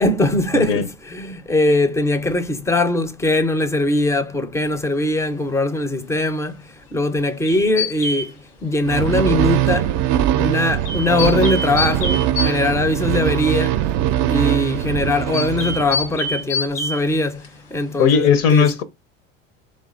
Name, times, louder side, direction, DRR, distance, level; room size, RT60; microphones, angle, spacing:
voice 1, 0.0-6.5 6.9-8.3 8.6-9.9 10.4-13.7 14.3-17.4 17.7-18.7, left 2 dB, 5° left, 0.5 m, -21 dB
voice 2, 0.5-0.8 18.0-18.8, left 7 dB, 60° left, 0.7 m, -16 dB
sound 1, 7.5-8.3 10.9-12.5 15.3-17.0 17.4-17.5, left 3 dB, 85° left, 1.2 m, -25 dB
sound 2, 8.8-16.3, right 12 dB, 45° right, 0.4 m, -21 dB
3.3 x 3.2 x 2.4 m
hypercardioid pair, 85°, 38 cm